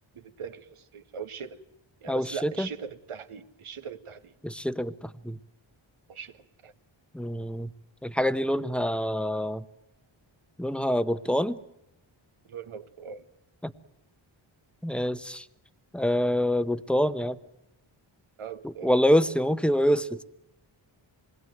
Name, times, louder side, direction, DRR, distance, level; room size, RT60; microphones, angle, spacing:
voice 1, 0.1-1.6 2.0-4.3 6.1-6.7 12.5-13.3 18.4-18.9, right 7 dB, 90° right, 8 dB, 1.8 m, -40 dB
voice 2, 2.1-2.7 4.4-5.4 7.1-7.7 8.0-9.6 10.6-11.6 13.6-13.7 14.8-15.4 15.9-17.4 18.6-20.2, equal, ahead, 13 dB, 0.9 m, -26 dB
27.0 x 21.0 x 9.3 m, 0.88 s
wide cardioid pair, 120°, 49 cm